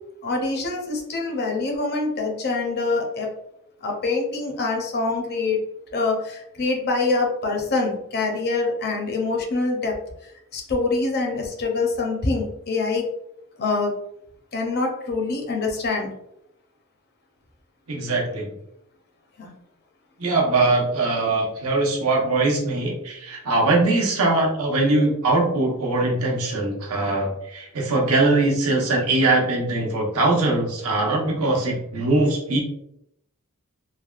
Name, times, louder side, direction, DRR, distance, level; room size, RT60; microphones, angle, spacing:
voice 1, 0.2-3.3 3.8-5.6 5.9-9.9 10.5-13.1 13.6-13.9 14.5-16.1 19.4-19.5, left 3 dB, 50° left, 1 dB, 0.6 m, -25 dB
voice 2, 17.9-18.5 20.2-32.6, right 2 dB, 70° right, -1 dB, 0.8 m, -21 dB
3.3 x 2.2 x 2.3 m, 0.79 s
head